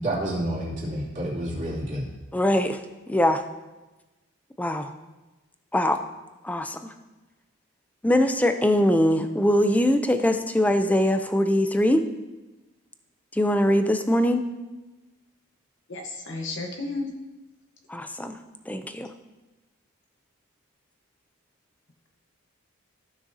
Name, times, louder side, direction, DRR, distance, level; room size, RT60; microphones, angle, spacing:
voice 1, 0.0-2.0, right 1 dB, 35° right, -7 dB, 2.8 m, -29 dB
voice 2, 2.3-2.8 3.1-3.4 4.6-4.9 5.7-6.0 6.4-6.9 8.0-12.0 13.3-14.5 17.9-18.4 18.7-19.1, left 1 dB, 5° left, 7 dB, 0.4 m, -22 dB
voice 3, 15.9-17.1, left 3 dB, 60° left, 2 dB, 1.1 m, -32 dB
14.5 x 6.3 x 2.7 m, 1.1 s
head